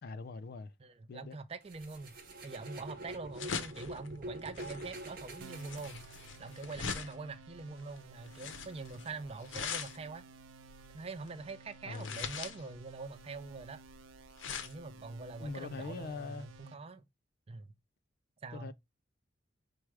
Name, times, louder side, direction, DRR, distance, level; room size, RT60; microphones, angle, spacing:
voice 1, 0.0-0.7 1.1-1.4 11.8-12.2 15.4-16.5 18.5-18.7, left 4 dB, 50° left, 0.3 m, -42 dB
voice 2, 0.8-6.0 6.4-10.2 10.9-13.8 14.5-17.0 17.5-17.7 18.4-18.7, right 3 dB, 30° right, 0.4 m, -44 dB
sound 1, 1.7-6.6, right 1 dB, 50° right, 0.9 m, -46 dB
sound 2, 1.8-16.6, left 6 dB, 85° left, 0.6 m, -43 dB
sound 3, 5.4-16.7, right 4 dB, 90° right, 0.5 m, -56 dB
4.6 x 2.1 x 4.6 m
head